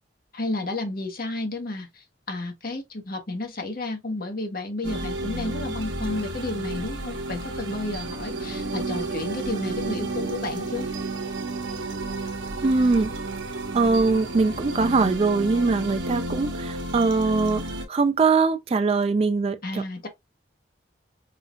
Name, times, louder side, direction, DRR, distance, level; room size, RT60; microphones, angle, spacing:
voice 1, 0.3-10.9 19.6-20.1, left 2 dB, 50° left, 1.3 m, -32 dB
sound 1, 4.8-17.9, right 2 dB, 85° right, 1.0 m, -32 dB
voice 2, 12.6-13.1 13.7-19.8, right 4 dB, 30° right, 0.3 m, -22 dB
5.6 x 2.7 x 2.4 m
head